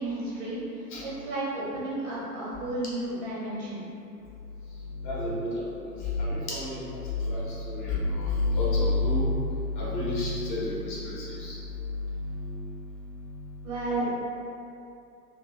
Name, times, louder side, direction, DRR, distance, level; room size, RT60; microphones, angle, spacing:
voice 1, 0.0-3.8 13.6-14.2, right 2 dB, 30° right, -8 dB, 0.4 m, -32 dB
voice 2, 4.7-11.6 11.9-13.6 13.9-14.2, left 2 dB, 35° left, -6 dB, 0.4 m, -30 dB
2.8 x 2.1 x 2.2 m, 2.6 s
figure-of-eight pair, 105°, 48 cm